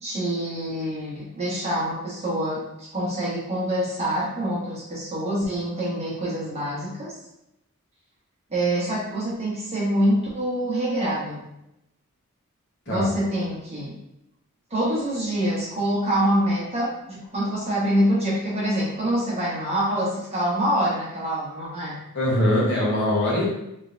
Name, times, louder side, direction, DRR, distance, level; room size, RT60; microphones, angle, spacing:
voice 1, 0.0-7.2 8.5-11.4 12.9-13.9 14.7-22.0, equal, 30° right, -7 dB, 1.3 m, -25 dB
voice 2, 22.1-23.4, left 1 dB, 55° left, -5 dB, 1.1 m, -22 dB
3.8 x 3.2 x 2.6 m, 0.85 s
head